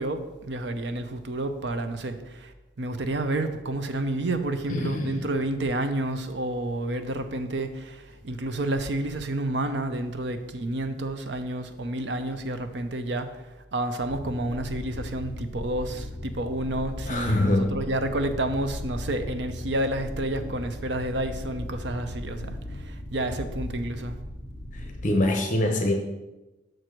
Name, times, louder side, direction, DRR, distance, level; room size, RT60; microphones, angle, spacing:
voice 1, 0.0-2.5 2.8-13.3 13.7-24.2, right 1 dB, 65° right, 8 dB, 0.7 m, -30 dB
voice 2, 4.7-5.3 17.0-17.8 24.7-25.9, left 1 dB, 40° left, 3 dB, 0.9 m, -25 dB
sound 1, 14.1-25.1, left 1 dB, 10° right, 2.4 m, -37 dB
6.3 x 4.5 x 6.3 m, 1.0 s
head